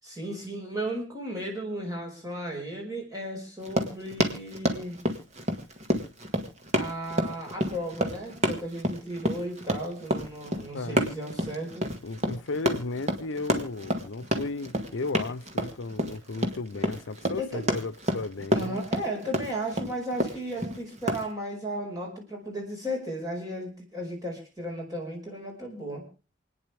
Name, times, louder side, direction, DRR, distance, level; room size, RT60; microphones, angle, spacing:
voice 1, 0.0-5.0 6.7-11.9 17.4-17.7 18.5-26.0, right 1 dB, 20° right, 5.3 m, -35 dB
Run, 3.6-21.3, equal, 35° right, 1.9 m, -29 dB
voice 2, 10.7-11.0 12.0-18.8, left 3 dB, 80° left, 0.7 m, -34 dB
28.5 x 9.8 x 3.4 m
head